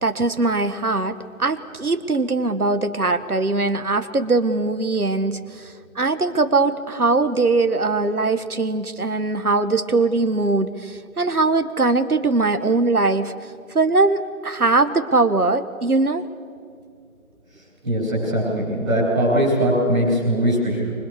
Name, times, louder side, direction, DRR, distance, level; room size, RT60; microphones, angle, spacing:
voice 1, 0.0-13.3 13.7-16.2, right 3 dB, 85° right, 10 dB, 1.6 m, -21 dB
voice 2, 17.8-20.9, right 1 dB, ahead, -15 dB, 4.0 m, -20 dB
25.5 x 25.5 x 6.7 m, 2.3 s
figure-of-eight pair, 175°, 43 cm